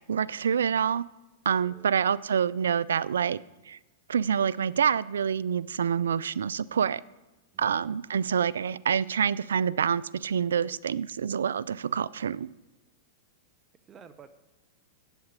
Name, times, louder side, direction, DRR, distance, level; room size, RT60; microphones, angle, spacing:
voice 1, 0.1-1.1 1.5-3.4 3.7-3.8 4.1-7.0 7.6-12.5, right 7 dB, 85° right, 0.3 m, -27 dB
voice 2, 1.5-1.9 7.5-8.0 13.9-14.3, right 7 dB, 25° right, 0.6 m, -52 dB
8.2 x 8.0 x 8.2 m
hypercardioid pair, 120°, 0 cm